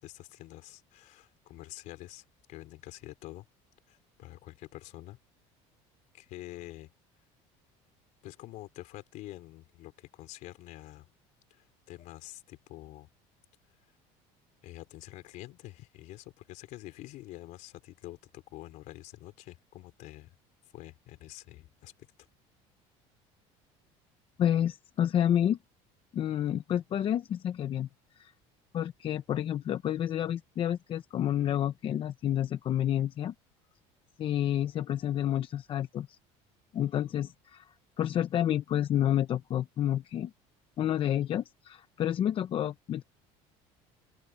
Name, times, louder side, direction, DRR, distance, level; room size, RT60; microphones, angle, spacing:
voice 1, 0.0-3.5 3.9-5.2 6.1-6.9 8.2-11.1 11.5-13.1 14.6-20.3 20.7-22.1, left 16 dB, 65° left, 3.8 m, -47 dB
voice 2, 24.4-25.6 26.1-27.9 28.2-28.3 28.7-33.3 34.2-36.2 36.7-40.3 40.8-43.0, left 10 dB, 40° left, 0.8 m, -29 dB
open air
cardioid pair, 135°, 14 cm